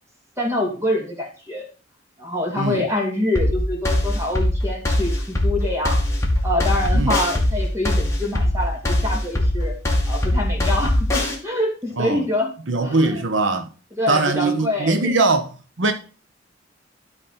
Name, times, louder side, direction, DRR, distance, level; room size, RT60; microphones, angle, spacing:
voice 1, 0.4-1.6 2.2-6.0 6.4-9.7 10.1-12.5 12.8-13.2 13.9-15.2, left 1 dB, 15° right, 2.8 m, -25 dB
voice 2, 2.6-2.9 6.9-7.2 12.0-12.2 12.7-13.7 14.1-15.5 15.8-15.9, right 3 dB, 80° right, 1.0 m, -21 dB
sound 1, 3.4-11.4, left 1 dB, 15° left, 2.1 m, -21 dB
12.0 x 4.1 x 5.8 m
head